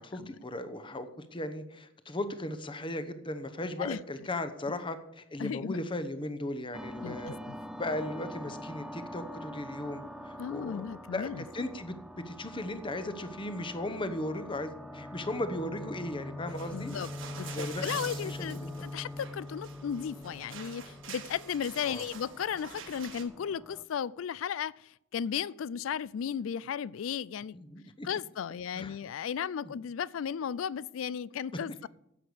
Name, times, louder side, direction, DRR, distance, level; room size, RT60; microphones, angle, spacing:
voice 1, 0.0-7.4 7.8-11.3 11.5-12.0 12.3-16.9 17.5-18.7 21.9-22.0 27.5-28.1 28.7-29.0 29.6-29.7, left 1 dB, 25° left, 0.9 m, -37 dB
voice 2, 5.4-5.8 7.0-7.5 10.4-11.4 16.7-17.1 17.4-27.6 28.0-31.9, left 8 dB, 75° left, 0.4 m, -35 dB
sound 1, 6.7-23.8, left 1 dB, ahead, 0.4 m, -44 dB
sound 2, 16.5-23.2, right 7 dB, 70° right, 1.5 m, -47 dB
11.0 x 7.9 x 6.9 m
head